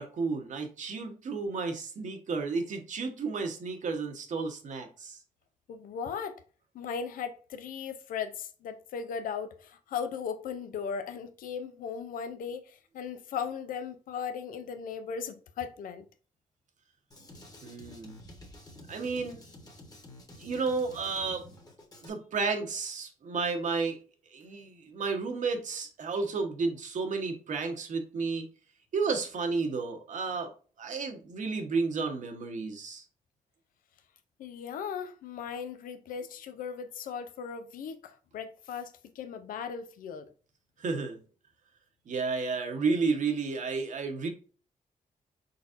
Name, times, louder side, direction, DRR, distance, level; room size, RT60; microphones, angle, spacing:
voice 1, 0.0-5.2 17.6-18.1 18.9-19.4 20.4-21.4 22.0-24.0 24.3-28.5 28.9-30.5 30.8-33.0 40.8-41.2 42.1-44.3, right 4 dB, 65° right, 1.1 m, -32 dB
voice 2, 5.7-6.4 6.7-16.1 34.4-40.3, left 6 dB, 90° left, 0.5 m, -37 dB
Drum kit, 17.1-22.1, left 1 dB, 25° left, 1.4 m, -50 dB
4.0 x 3.9 x 2.5 m
cardioid pair, 95°, 14 cm